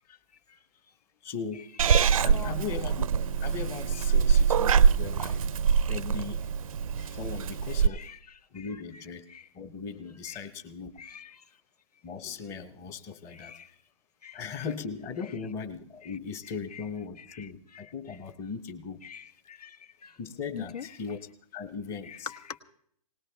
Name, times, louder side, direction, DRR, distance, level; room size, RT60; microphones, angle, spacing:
voice 1, 1.2-1.7 2.2-3.1 3.4-5.4 5.8-6.4 7.1-8.1 8.5-9.2 9.5-10.9 12.0-13.6 14.3-19.0 20.2-21.2 21.5-22.3, left 6 dB, 15° left, 0.7 m, -38 dB
Purr / Meow, 1.8-7.9, right 7 dB, 60° right, 0.5 m, -24 dB
voice 2, 2.2-2.5 7.0-7.1 7.9-9.0 9.3-9.5 10.2-10.4 11.0-11.4 13.3-13.7 14.2-14.7 16.0-16.2 16.7-16.8 17.2-17.8 19.0-20.2 20.5-21.0 22.0-22.6, left 6 dB, 80° left, 1.5 m, -44 dB
20.0 x 18.5 x 3.4 m
hypercardioid pair, 160°, 20 cm